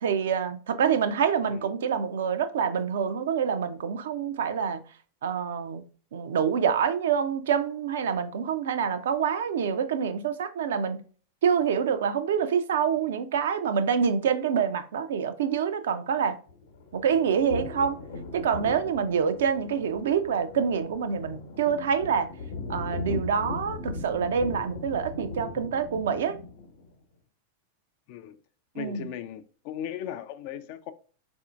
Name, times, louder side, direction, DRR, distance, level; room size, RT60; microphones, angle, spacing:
voice 1, 0.0-4.8 5.2-5.8 6.1-11.0 11.4-16.4 16.9-18.0 18.3-22.3 22.7-26.4 28.8-29.1, right 7 dB, 60° right, 0.4 m, -26 dB
sound 1, 16.5-26.9, left 3 dB, 65° left, 0.9 m, -38 dB
voice 2, 28.7-30.9, left 10 dB, 45° left, 0.4 m, -37 dB
4.1 x 2.6 x 2.4 m
figure-of-eight pair, 90°, 0 cm